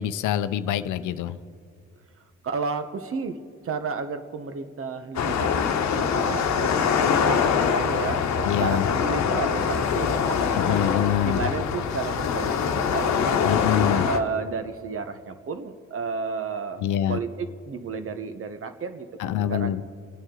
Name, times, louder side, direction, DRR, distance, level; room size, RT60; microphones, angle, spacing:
voice 1, 0.0-1.4 8.4-8.9 10.5-11.4 13.4-14.1 16.8-17.2 19.2-19.8, left 10 dB, 80° left, 12 dB, 0.7 m, -25 dB
voice 2, 2.4-3.4 3.6-5.7 6.0-10.8 11.2-13.6 14.0-16.8 17.1-19.1 19.5-19.8, right 4 dB, 45° right, 9 dB, 1.1 m, -32 dB
sound 1, 5.1-14.2, left 7 dB, 65° left, 1.1 m, -24 dB
27.0 x 9.1 x 3.8 m, 2.2 s
cardioid pair, 90°, 30 cm